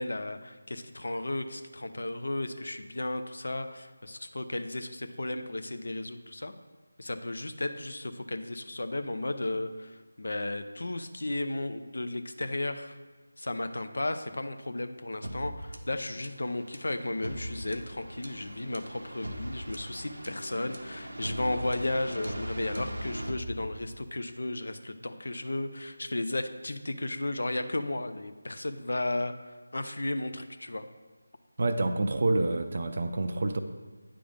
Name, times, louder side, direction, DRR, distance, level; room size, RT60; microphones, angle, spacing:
voice 1, 0.0-6.5 7.0-13.0 13.4-30.9, left 2 dB, 65° left, 8 dB, 0.5 m, -34 dB
sound 1, 15.2-24.2, equal, 75° right, 0.7 m, -40 dB
voice 2, 31.6-33.6, right 2 dB, 45° right, 6 dB, 0.4 m, -27 dB
8.7 x 3.4 x 5.0 m, 1.3 s
figure-of-eight pair, 160°, 0 cm